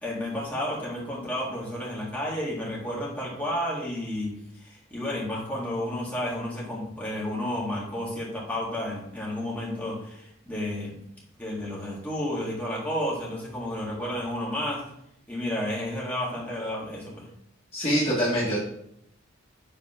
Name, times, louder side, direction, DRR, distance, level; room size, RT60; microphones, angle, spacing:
voice 1, 0.0-11.0 11.4-14.8 15.3-17.3, left 1 dB, 10° left, -6 dB, 2.1 m, -31 dB
voice 2, 17.7-18.6, equal, 30° left, -7 dB, 1.5 m, -24 dB
5.5 x 4.1 x 5.6 m, 0.74 s
head